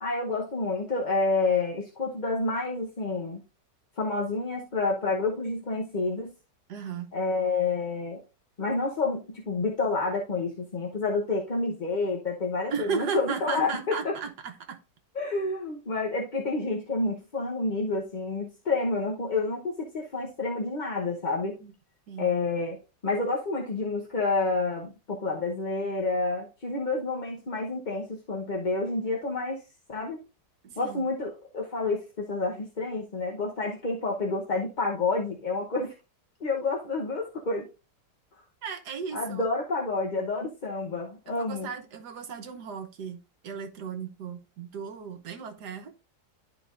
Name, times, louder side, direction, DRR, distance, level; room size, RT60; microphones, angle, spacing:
voice 1, 0.0-3.4 4.0-6.3 7.1-8.2 8.6-14.1 15.1-21.6 22.2-29.6 29.9-30.2 30.8-35.9 36.4-37.7 39.1-41.7, left 3 dB, 35° left, 0.9 m, -29 dB
voice 2, 6.7-7.1 12.7-14.8 21.6-21.7 22.1-22.3 30.6-31.0 38.6-39.4 41.3-45.9, right 6 dB, 70° right, 1.6 m, -35 dB
11.5 x 4.6 x 2.6 m
omnidirectional pair, 1.9 m